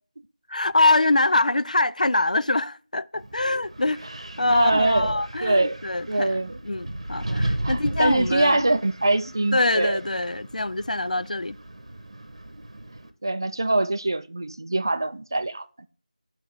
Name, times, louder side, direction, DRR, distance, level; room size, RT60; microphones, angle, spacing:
voice 1, 0.5-4.0 4.4-6.4 6.6-8.8 9.5-11.6, left 2 dB, 75° left, 0.4 m, -24 dB
Wind, 3.2-13.1, right 1 dB, 55° right, 0.9 m, -35 dB
voice 2, 4.5-5.8 6.1-6.6 7.3-10.0 13.2-15.9, right 2 dB, 30° right, 0.3 m, -24 dB
7.3 x 3.2 x 6.0 m
figure-of-eight pair, 175°, 4 cm